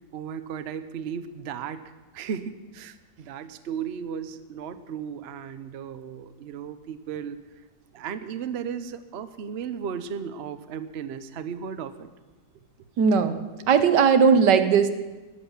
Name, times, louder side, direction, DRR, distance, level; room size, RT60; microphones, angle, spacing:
voice 1, 0.1-7.5 7.9-12.1, right 7 dB, 50° right, 11 dB, 0.8 m, -35 dB
voice 2, 13.0-13.4 13.7-14.9, right 6 dB, 85° right, 9 dB, 1.6 m, -18 dB
14.5 x 7.3 x 9.9 m, 1.2 s
omnidirectional pair, 1.8 m